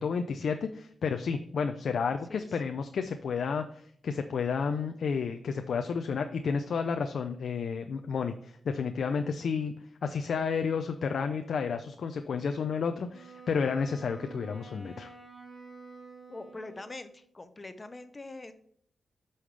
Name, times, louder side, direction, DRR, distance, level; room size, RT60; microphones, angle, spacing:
voice 1, 0.0-9.7 10.0-15.1, left 5 dB, 75° left, 6 dB, 0.5 m, -31 dB
voice 2, 2.1-2.6 16.3-18.5, left 2 dB, 30° left, 10 dB, 0.8 m, -44 dB
Wind instrument woodwind instrument, 13.1-17.3, right 4 dB, 25° right, 2.8 m, -49 dB
8.3 x 5.6 x 3.3 m, 0.65 s
cardioid pair, 75°, 0 cm